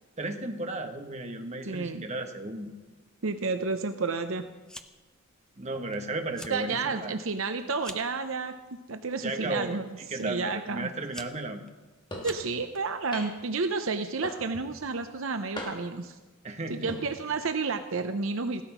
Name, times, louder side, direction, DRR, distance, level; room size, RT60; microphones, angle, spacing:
voice 1, 0.2-2.7 5.6-7.1 9.2-9.8 10.1-11.6 16.4-17.0, right 2 dB, 30° right, 4 dB, 1.4 m, -34 dB
voice 2, 1.7-2.0 3.2-4.4 6.5-10.9 12.2-16.2 16.7-18.6, right 4 dB, 65° right, 8 dB, 0.7 m, -31 dB
Fire, 4.7-5.2 5.5-6.0 6.2-6.6 7.0-8.2 9.0-9.3 10.2-10.3 10.8-12.8, left 1 dB, 5° left, 0.7 m, -46 dB
sound 1, 12.1-12.4 13.1-13.5 14.2-14.7 15.6-16.0 16.7-17.0, left 1 dB, 20° left, 2.9 m, -39 dB
16.0 x 12.5 x 6.1 m, 1.3 s
head